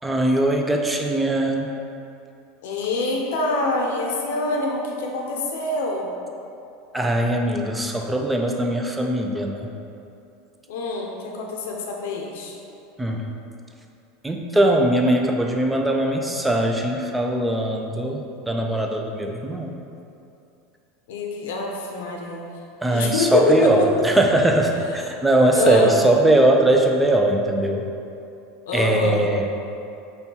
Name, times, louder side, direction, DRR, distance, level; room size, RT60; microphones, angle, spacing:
voice 1, 0.0-1.7 6.9-9.7 13.0-13.3 14.2-19.7 22.8-27.9 28.7-29.5, right 1 dB, 5° right, 2 dB, 0.3 m, -20 dB
voice 2, 2.6-6.1 10.7-12.5 21.1-22.4 22.9-24.1 25.5-26.0 28.7-29.2, left 2 dB, 85° left, 0 dB, 0.5 m, -25 dB
5.3 x 2.2 x 2.8 m, 2.7 s
supercardioid pair, 140°, 0 cm